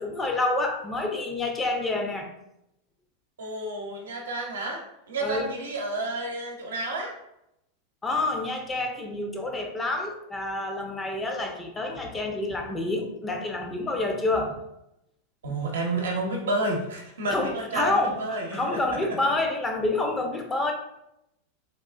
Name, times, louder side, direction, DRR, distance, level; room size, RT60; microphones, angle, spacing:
voice 1, 0.0-2.3 5.2-5.5 8.0-14.6 17.3-18.2 18.5-20.7, left 2 dB, 20° left, 3 dB, 0.6 m, -28 dB
voice 2, 3.4-7.1 15.4-19.0, right 2 dB, 85° right, 0 dB, 0.7 m, -30 dB
3.7 x 2.4 x 2.3 m, 0.82 s
hypercardioid pair, 105°, 0 cm